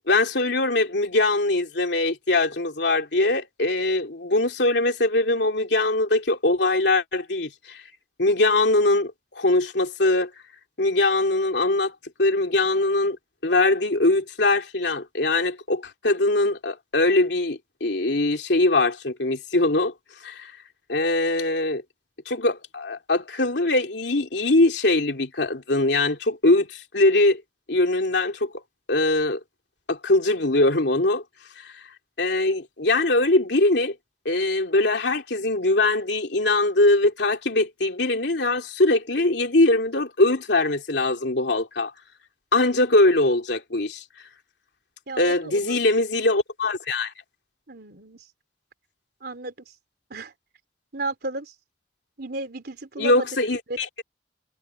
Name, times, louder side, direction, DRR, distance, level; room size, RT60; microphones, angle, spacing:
voice 1, 0.1-7.8 8.2-10.3 10.8-11.9 12.2-13.2 13.4-19.9 20.2-20.5 20.9-21.8 22.3-27.4 27.7-28.5 28.9-29.4 29.9-31.2 31.6-31.7 32.2-33.9 34.2-41.9 42.5-44.0 45.2-47.1 53.0-53.9, left 2 dB, 80° left, 2.8 m, -22 dB
voice 2, 45.1-45.8 47.7-48.3 49.2-49.7 50.1-50.3 50.9-51.5 52.2-53.3 53.7-53.8, right 2 dB, 65° right, 4.0 m, -33 dB
head